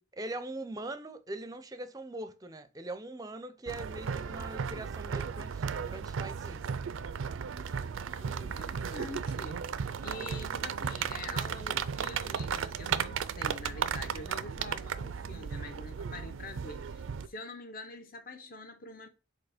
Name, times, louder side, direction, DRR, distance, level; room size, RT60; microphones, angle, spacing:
voice 1, 0.2-6.6, right 2 dB, 20° right, 0.5 m, -41 dB
sound 1, 3.7-17.3, right 6 dB, 80° right, 0.4 m, -35 dB
voice 2, 8.2-9.7 10.0-19.1, left 2 dB, 45° left, 0.8 m, -45 dB
4.8 x 4.0 x 4.9 m
head